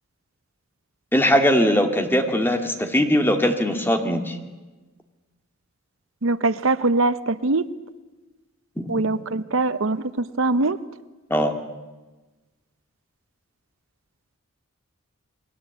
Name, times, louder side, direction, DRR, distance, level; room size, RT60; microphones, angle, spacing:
voice 1, 1.1-4.4 8.8-8.9 11.3-11.5, equal, 10° left, 5 dB, 2.0 m, -20 dB
voice 2, 6.2-7.6 8.9-10.8, right 3 dB, 65° right, 13 dB, 0.8 m, -22 dB
28.5 x 21.5 x 8.4 m, 1.2 s
head